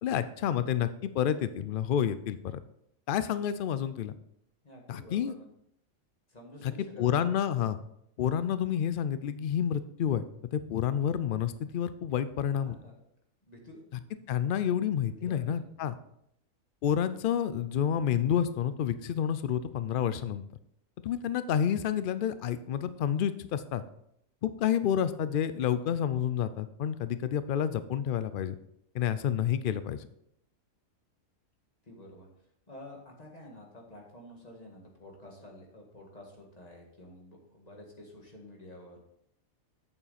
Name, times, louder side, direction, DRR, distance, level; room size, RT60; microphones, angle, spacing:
voice 1, 0.0-2.6 3.1-4.1 4.9-5.3 6.6-7.8 8.2-10.2 10.5-12.7 14.3-15.9 16.8-20.5 21.0-23.8 24.4-28.5 28.9-30.1, left 9 dB, 85° left, 13 dB, 0.4 m, -29 dB
voice 2, 4.6-5.5 6.3-7.2 12.6-13.0 13.5-14.0 15.0-15.7 31.8-32.3 32.7-39.0, left 1 dB, 30° left, -1 dB, 2.0 m, -50 dB
8.7 x 7.0 x 4.2 m, 0.75 s
omnidirectional pair, 1.4 m